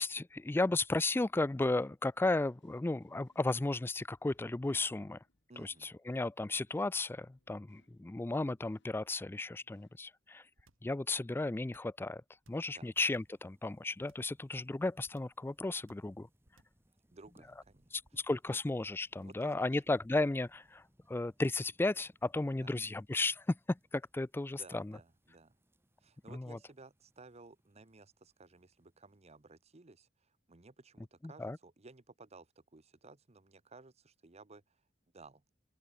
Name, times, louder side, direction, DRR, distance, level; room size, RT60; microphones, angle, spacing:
voice 1, 0.0-5.2 5.6-10.4 10.8-12.2 12.5-16.3 17.9-20.8 21.1-24.9 26.3-26.6 31.2-31.6, left 2 dB, 10° left, 0.3 m, -34 dB
sound 1, 1.8-10.0, left 1 dB, 65° left, 5.8 m, -78 dB
voice 2, 5.5-5.9 12.7-12.9 17.1-18.6 19.2-19.8 22.6-22.7 24.5-25.6 26.0-34.8 35.1-35.4, right 3 dB, 35° right, 1.0 m, -57 dB
sound 2, 10.6-11.0 11.6-12.0 12.4-13.4 14.0-14.4 15.1-15.5 15.9-16.2 16.5-16.9 18.0-18.4 19.2-19.5, right 1 dB, 90° right, 5.6 m, -67 dB
sound 3, 12.5-29.8, equal, 10° right, 4.3 m, -74 dB
open air
head